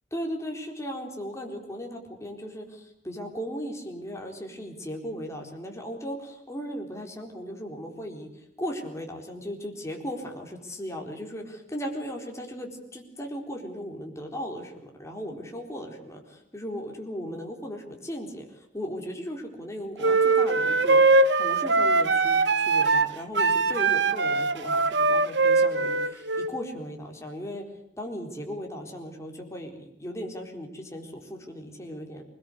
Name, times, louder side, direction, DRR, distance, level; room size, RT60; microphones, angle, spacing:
voice 1, 0.1-8.3 8.6-27.6 28.0-32.2, equal, 15° left, 1 dB, 4.1 m, -37 dB
sound 1, 20.0-26.5, right 3 dB, 75° right, 1.1 m, -22 dB
22.0 x 20.5 x 8.2 m, 0.77 s
head